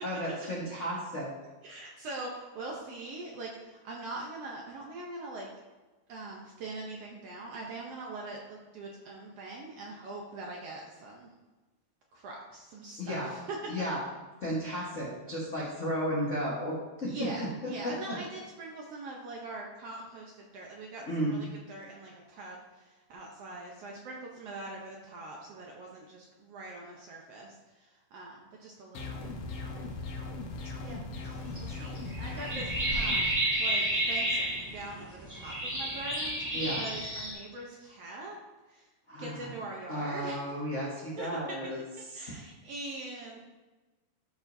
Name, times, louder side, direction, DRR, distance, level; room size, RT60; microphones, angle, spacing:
voice 1, 0.0-1.3 13.0-13.3 13.7-14.0 14.4-17.1 17.8-18.1 21.1-21.4 36.5-36.9 39.1-39.5 39.9-41.8 42.1-42.3, equal, 90° left, -6 dB, 0.6 m, -33 dB
voice 2, 1.6-5.5 6.1-11.3 12.1-13.7 14.6-14.8 17.1-29.9 30.8-31.0 31.6-38.4 38.7-38.9 39.2-40.4 41.2-41.3 42.1-43.4, right 2 dB, 70° right, -1 dB, 1.5 m, -43 dB
sound 1, 28.9-33.3, left 3 dB, 65° left, 1.8 m, -39 dB
sound 2, 31.2-37.3, right 1 dB, 5° right, 1.5 m, -31 dB
12.5 x 4.8 x 2.6 m, 1.2 s
omnidirectional pair, 3.7 m